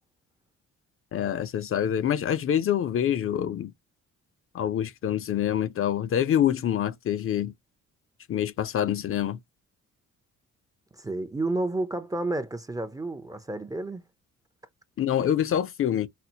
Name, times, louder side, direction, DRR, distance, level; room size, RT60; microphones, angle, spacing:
voice 1, 1.1-3.7 4.5-7.5 8.3-9.4 15.0-16.1, left 10 dB, 45° left, 0.5 m, -26 dB
voice 2, 10.9-14.1, right 2 dB, 10° right, 0.5 m, -31 dB
4.2 x 2.0 x 2.7 m
cardioid pair, 90°, 30 cm